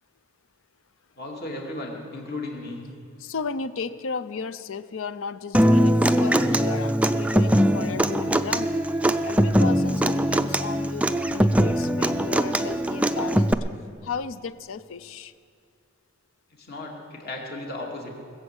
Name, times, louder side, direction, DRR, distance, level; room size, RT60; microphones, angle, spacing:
voice 1, 1.2-2.8 16.5-18.1, left 2 dB, 50° left, -1 dB, 2.6 m, -35 dB
voice 2, 3.2-8.8 9.2-13.6 14.0-15.3, left 5 dB, 70° left, 15 dB, 0.5 m, -34 dB
Human voice / Acoustic guitar, 5.5-13.5, equal, 5° right, 0.4 m, -21 dB
20.5 x 7.1 x 8.0 m, 2.3 s
head